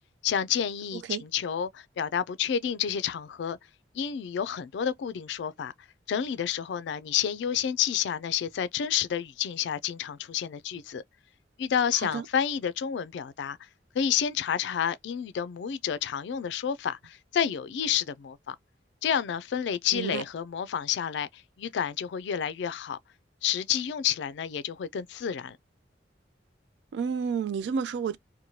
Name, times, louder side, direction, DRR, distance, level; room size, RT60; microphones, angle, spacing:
voice 1, 0.2-3.6 3.9-5.7 6.1-11.0 11.6-13.6 13.9-18.6 19.0-23.0 23.4-25.6, left 8 dB, 80° left, 0.3 m, -30 dB
voice 2, 19.9-20.2 26.9-28.2, right 6 dB, 80° right, 0.3 m, -30 dB
2.9 x 2.1 x 2.7 m
head